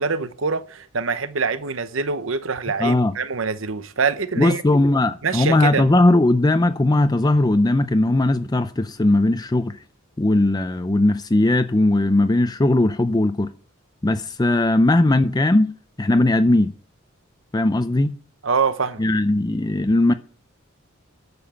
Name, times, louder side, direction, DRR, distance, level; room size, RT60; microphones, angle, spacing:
voice 1, 0.0-4.6 5.2-5.9 18.4-19.0, right 5 dB, 70° right, 0.9 m, -24 dB
voice 2, 2.8-3.1 4.4-9.8 10.2-13.5 14.0-16.7 17.5-18.1 19.0-20.1, left 2 dB, 20° left, 0.5 m, -18 dB
11.0 x 7.0 x 6.8 m
head